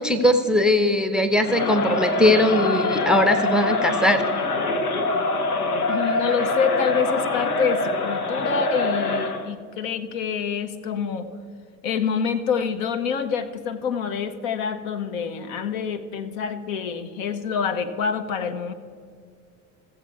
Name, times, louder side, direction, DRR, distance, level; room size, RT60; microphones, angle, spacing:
voice 1, 0.0-4.3, left 1 dB, ahead, 8 dB, 0.7 m, -20 dB
Crowd, 1.4-9.5, left 2 dB, 90° left, 0.8 m, -24 dB
voice 2, 5.9-11.3 11.8-18.7, left 6 dB, 60° left, 8 dB, 0.9 m, -26 dB
15.0 x 7.6 x 4.6 m, 2.2 s
figure-of-eight pair, 65°, 43 cm